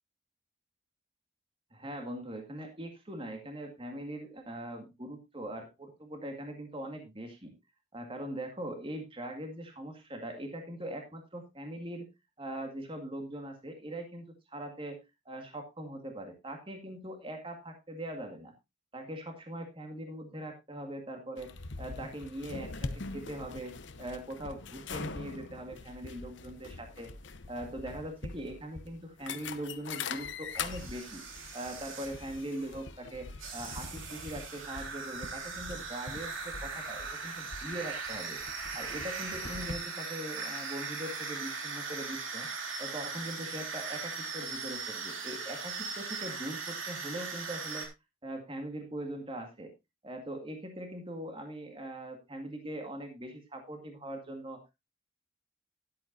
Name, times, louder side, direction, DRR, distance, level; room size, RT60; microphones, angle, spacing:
voice 1, 1.7-7.5 7.9-12.1 12.4-18.5 18.9-27.1 27.5-31.2 31.5-38.4 38.7-42.5 42.8-47.9 48.2-49.7 50.0-54.6, right 1 dB, 25° right, 4 dB, 2.0 m, -41 dB
sound 1, 21.4-39.7, left 4 dB, 65° left, 0.9 m, -43 dB
sound 2, 30.5-32.8 33.4-47.9, right 4 dB, 75° right, 3.4 m, -39 dB
12.5 x 11.5 x 2.7 m, 0.23 s
head